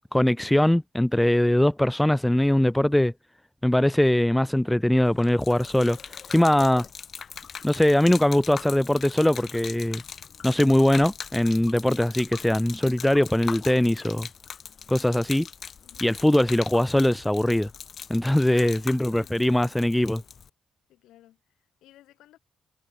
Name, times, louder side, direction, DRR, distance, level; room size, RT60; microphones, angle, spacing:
voice 1, 0.1-3.1 3.6-6.0 6.3-6.8 7.6-10.0 10.4-14.3 14.9-15.5 16.0-17.7 18.1-20.2, left 1 dB, 5° left, 0.4 m, -21 dB
Gurgling / Liquid, 5.0-20.5, left 7 dB, 50° left, 2.2 m, -41 dB
voice 2, 15.8-16.1 18.5-19.7 20.9-22.4, left 14 dB, 85° left, 5.8 m, -54 dB
cardioid pair, 90°, 0 cm